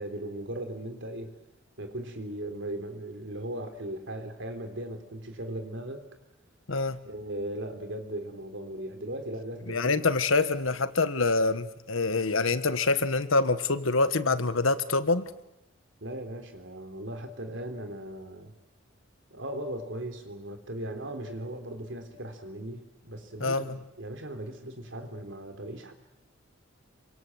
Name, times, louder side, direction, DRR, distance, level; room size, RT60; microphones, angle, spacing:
voice 1, 0.0-1.4 1.8-6.1 7.0-10.1 16.0-18.5 19.3-25.9, right 1 dB, 65° right, 6 dB, 3.8 m, -38 dB
voice 2, 6.7-7.0 9.7-15.3 23.4-23.8, left 3 dB, 80° left, 12 dB, 1.5 m, -26 dB
27.0 x 25.0 x 8.0 m, 0.87 s
head